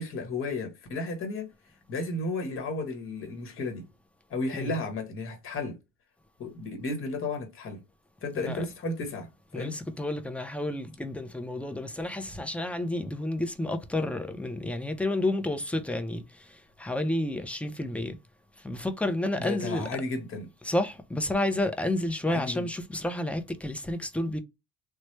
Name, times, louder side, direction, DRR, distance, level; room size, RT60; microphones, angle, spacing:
voice 1, 0.0-1.5 1.9-3.9 4.3-5.8 6.4-7.8 8.2-9.7 19.4-20.5 22.2-22.7, left 2 dB, 35° left, 1.1 m, -33 dB
voice 2, 9.5-18.2 18.6-19.9 20.7-24.4, left 1 dB, 5° left, 0.5 m, -30 dB
3.1 x 2.1 x 3.0 m
supercardioid pair, 95°, 38 cm